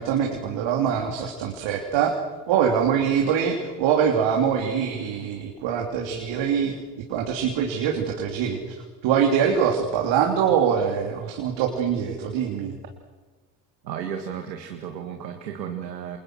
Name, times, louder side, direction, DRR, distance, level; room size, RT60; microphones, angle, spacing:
voice 1, 0.0-2.1 2.5-6.8 7.1-8.7 9.0-12.8, right 7 dB, 60° right, 1 dB, 3.3 m, -23 dB
voice 2, 13.8-16.2, right 8 dB, 85° right, 5 dB, 1.9 m, -33 dB
28.5 x 27.5 x 6.4 m, 1.3 s
hypercardioid pair, 55°, 49 cm